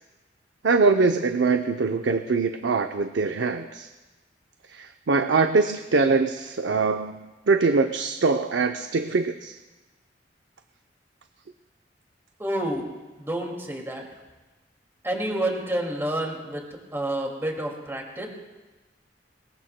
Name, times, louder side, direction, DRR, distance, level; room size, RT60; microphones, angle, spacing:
voice 1, 0.6-3.9 4.7-9.5, right 4 dB, 85° right, 6 dB, 0.6 m, -23 dB
voice 2, 12.4-12.9 13.2-14.0 15.0-16.6 16.9-18.3, right 1 dB, 15° right, 0 dB, 2.2 m, -29 dB
22.0 x 21.0 x 2.2 m, 1.2 s
head